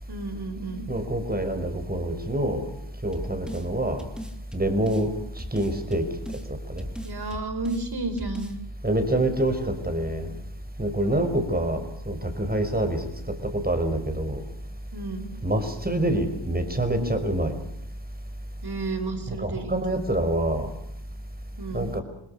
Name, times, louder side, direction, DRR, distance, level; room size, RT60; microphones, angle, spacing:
voice 1, 0.1-0.9 7.0-8.6 11.0-11.4 14.9-15.3 18.6-20.0 21.6-21.9, right 3 dB, 55° right, 11 dB, 4.8 m, -32 dB
voice 2, 0.9-2.7 3.0-4.0 4.5-5.1 5.5-6.1 6.5-6.8 8.8-10.3 10.8-14.4 15.4-17.5 19.3-20.7 21.7-22.0, right 1 dB, 20° right, 8 dB, 5.5 m, -26 dB
sound 1, 3.1-3.7 4.0-5.1 5.4-6.5 6.8-7.8 8.2-8.6, equal, ahead, 3.1 m, -38 dB
28.0 x 20.0 x 6.6 m, 0.76 s
cardioid pair, 65°, 47 cm